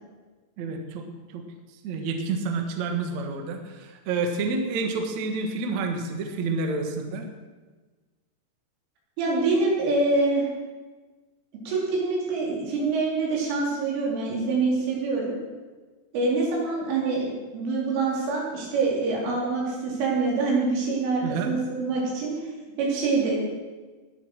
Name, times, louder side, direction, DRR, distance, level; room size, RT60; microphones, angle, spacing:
voice 1, 0.6-1.1 1.3-1.5 1.8-7.3 21.2-21.5, right 4 dB, 65° right, 4 dB, 1.7 m, -29 dB
voice 2, 9.2-10.5 11.7-15.3 16.1-22.3 22.8-23.3, right 3 dB, 85° right, -3 dB, 6.3 m, -25 dB
19.5 x 7.8 x 6.4 m, 1.3 s
omnidirectional pair, 5.6 m